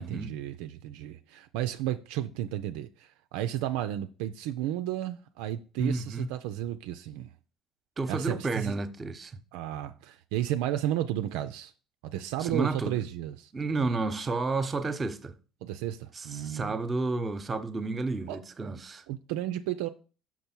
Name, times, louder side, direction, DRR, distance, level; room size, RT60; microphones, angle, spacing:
voice 1, 0.0-7.3 8.1-8.8 9.5-11.7 12.1-13.9 15.6-16.8 18.3-18.4 19.1-19.9, right 12 dB, 75° right, 0.4 m, -33 dB
voice 2, 5.8-6.3 8.0-9.4 12.4-13.1 13.5-15.3 16.1-19.0, right 3 dB, 30° right, 0.9 m, -31 dB
6.1 x 5.4 x 4.4 m
hypercardioid pair, 70°, 0 cm